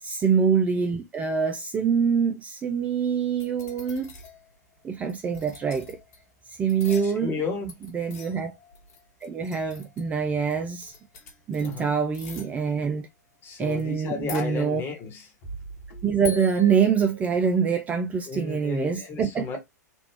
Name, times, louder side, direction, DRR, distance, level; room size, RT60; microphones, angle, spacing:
voice 1, 0.0-4.1 4.8-6.0 6.5-7.3 7.9-8.5 9.2-10.9 11.5-13.1 13.6-14.8 16.0-19.5, right 6 dB, 15° right, 0.3 m, -25 dB
sound 1, 3.4-4.4 5.1-6.2 6.5-7.4 7.7-10.2 10.5-10.6 10.8-11.8 12.1-12.5 13.7-13.8 14.1-15.0 15.4-17.5, left 1 dB, 45° left, 1.3 m, -41 dB
voice 2, 6.8-7.8 11.6-11.9 13.4-15.3 18.3-19.6, left 4 dB, 25° left, 1.2 m, -33 dB
3.4 x 2.3 x 3.1 m
figure-of-eight pair, 105°, 9 cm